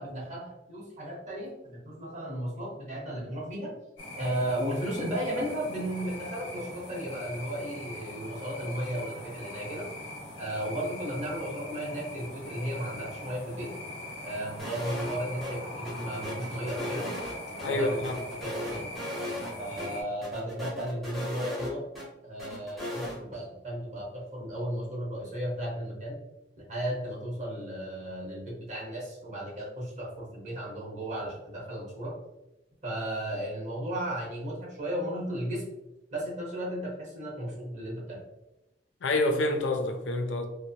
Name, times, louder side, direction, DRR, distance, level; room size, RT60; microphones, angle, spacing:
voice 1, 0.0-3.7 4.2-9.9 10.4-13.7 14.2-17.1 17.5-18.9 19.5-21.8 22.2-26.2 26.7-32.1 32.8-35.6 36.1-38.2, right 1 dB, 40° right, -4 dB, 0.9 m, -35 dB
sound 1, 4.0-20.0, left 1 dB, 30° left, 0.8 m, -41 dB
sound 2, 14.6-15.1 15.4-15.5 15.8-17.7 18.0-19.5 19.8-19.9 20.2-22.0 22.4-23.2, left 1 dB, ahead, 0.7 m, -37 dB
voice 2, 17.6-18.1 39.0-40.5, left 2 dB, 85° left, 5 dB, 0.4 m, -27 dB
2.8 x 2.0 x 2.7 m, 0.94 s
head